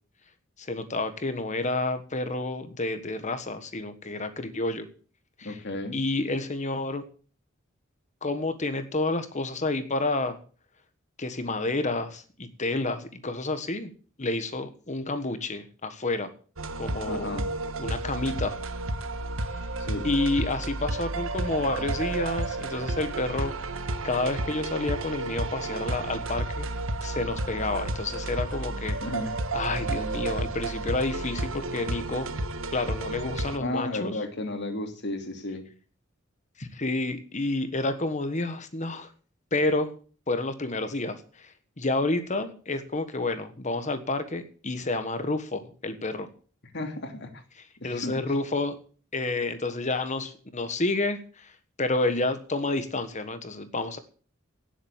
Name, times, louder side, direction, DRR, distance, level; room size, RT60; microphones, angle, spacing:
voice 1, 0.6-4.9 5.4-5.5 5.9-7.0 8.2-10.4 11.2-13.9 14.2-16.3 16.8-17.3 17.8-18.5 20.0-23.6 24.0-26.7 27.0-29.0 29.5-32.3 32.7-34.1 36.6-39.1 39.5-39.9 40.3-46.3 47.8-48.8 49.1-51.5 51.8-54.0, left 2 dB, 35° left, 10 dB, 1.4 m, -29 dB
voice 2, 5.4-6.0 17.1-17.4 19.8-20.1 21.8-21.9 29.0-29.3 33.5-35.7 46.7-47.4 47.8-48.2, left 2 dB, 55° left, 5 dB, 2.9 m, -33 dB
sound 1, 16.6-33.6, right 2 dB, 75° right, 1.4 m, -32 dB
17.5 x 7.7 x 7.3 m, 0.41 s
head